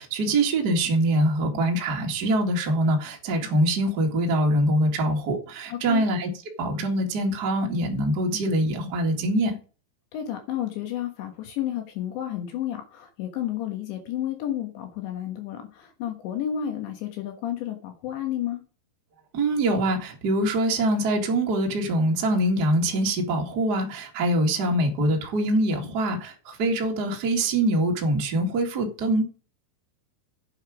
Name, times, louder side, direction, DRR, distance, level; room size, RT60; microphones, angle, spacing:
voice 1, 0.0-6.3 6.6-9.5 19.3-29.3, right 1 dB, 80° right, 0.9 m, -24 dB
voice 2, 5.7-6.1 10.1-18.6, left 11 dB, 70° left, 3.5 m, -31 dB
10.5 x 8.2 x 5.0 m
omnidirectional pair, 5.6 m